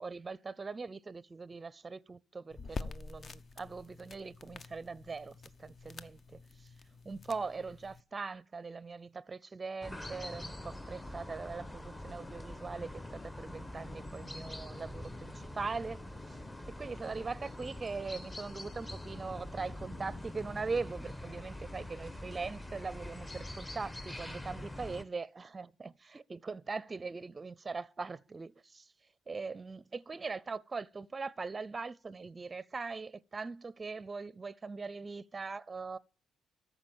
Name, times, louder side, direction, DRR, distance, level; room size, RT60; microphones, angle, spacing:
voice 1, 0.0-6.7 7.0-16.4 16.7-28.9 29.3-36.0, right 4 dB, 30° right, 0.5 m, -41 dB
sound 1, 2.5-8.0, left 4 dB, 45° left, 0.8 m, -47 dB
sound 2, 9.8-25.0, left 1 dB, 15° left, 1.1 m, -44 dB
14.0 x 5.0 x 8.9 m
cardioid pair, 90°, 0 cm